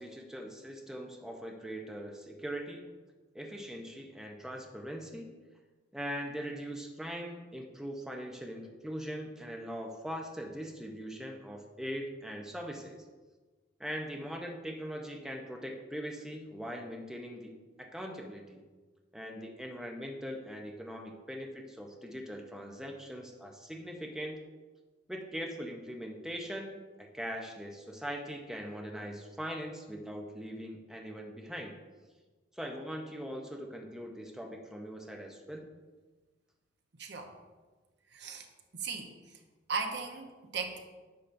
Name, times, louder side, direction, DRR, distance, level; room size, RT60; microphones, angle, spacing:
voice 1, 0.0-2.9 3.3-5.3 5.9-13.0 13.8-17.5 17.8-18.6 19.1-24.4 25.1-31.8 32.5-35.7, equal, 5° right, 1 dB, 0.7 m, -41 dB
voice 2, 37.0-37.3 38.1-38.5 38.7-39.1 39.7-40.8, right 4 dB, 65° right, 4 dB, 0.9 m, -37 dB
10.0 x 6.8 x 2.6 m, 1.3 s
head